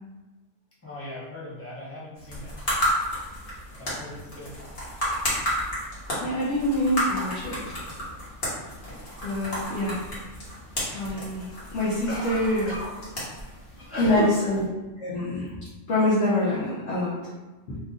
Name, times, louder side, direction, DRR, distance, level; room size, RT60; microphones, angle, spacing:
voice 1, 0.8-2.7 3.7-4.6 12.1-12.9 13.3-14.4, left 2 dB, 15° left, -8 dB, 0.9 m, -38 dB
sound 1, 2.2-14.6, equal, 45° left, 1.4 m, -32 dB
voice 2, 6.2-7.8 9.2-10.0 10.9-12.7 14.0-14.6 15.0-15.5 15.9-17.1 17.7-17.8, left 1 dB, 75° left, -9 dB, 1.1 m, -25 dB
3.0 x 2.5 x 3.6 m, 1.1 s
omnidirectional pair, 1.2 m